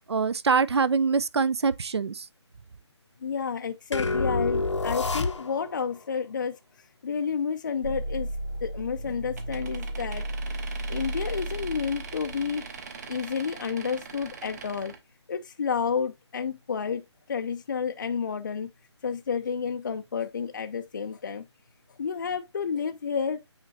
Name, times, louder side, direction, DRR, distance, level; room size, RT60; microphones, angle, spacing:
voice 1, 0.1-2.2, right 5 dB, 65° right, 0.6 m, -24 dB
voice 2, 3.2-8.3 8.6-10.2 10.6-12.7 13.1-14.9 15.3-18.7 19.0-21.4 21.9-23.4, left 6 dB, 45° left, 0.5 m, -31 dB
sound 1, 3.9-5.8, left 3 dB, 85° left, 0.8 m, -27 dB
sound 2, 7.8-13.2, right 1 dB, 80° right, 4.8 m, -35 dB
sound 3, 9.4-15.0, right 5 dB, 35° right, 1.1 m, -42 dB
8.7 x 4.3 x 2.7 m
figure-of-eight pair, 155°, 15 cm